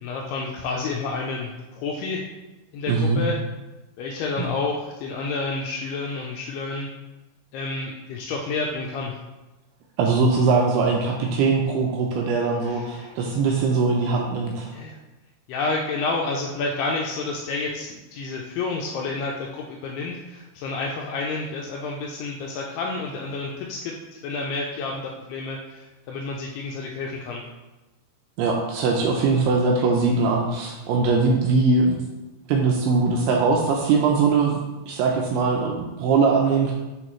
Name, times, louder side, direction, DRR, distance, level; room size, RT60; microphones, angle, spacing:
voice 1, 0.0-2.2 2.7-3.4 4.0-6.9 7.5-9.2 12.6-13.2 14.7-15.0 15.5-24.0 24.2-27.4, left 3 dB, 85° left, -1 dB, 2.3 m, -30 dB
voice 2, 2.9-3.2 4.4-4.5 10.0-14.7 28.4-32.0 32.5-34.6 34.9-36.7, right 4 dB, 80° right, 0 dB, 2.4 m, -21 dB
8.2 x 3.9 x 3.1 m, 1.1 s
omnidirectional pair, 5.1 m